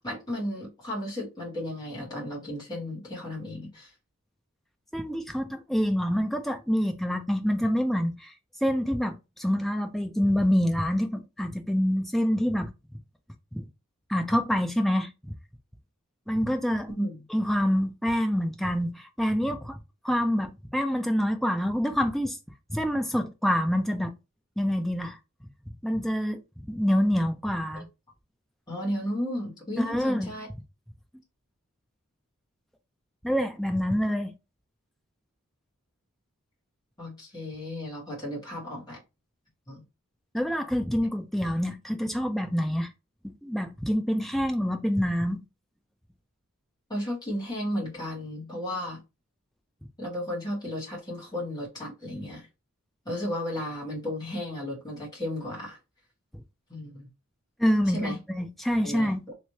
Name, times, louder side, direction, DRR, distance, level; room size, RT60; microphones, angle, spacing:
voice 1, 0.0-3.9 16.9-17.2 27.7-27.8 28.7-30.5 37.0-39.0 39.7-39.8 46.9-49.0 50.0-52.5 53.0-55.8 56.7-57.1 57.9-58.2 58.8-59.3, left 1 dB, 20° left, 1.8 m, -34 dB
voice 2, 4.9-8.3 8.6-12.7 13.5-13.7 14.1-15.3 16.3-16.9 17.3-19.8 20.0-22.4 22.7-24.1 24.6-25.2 25.8-27.9 29.8-30.3 33.2-34.3 40.3-42.9 43.4-45.4 57.6-59.2, equal, ahead, 0.4 m, -26 dB
3.2 x 3.1 x 2.8 m
head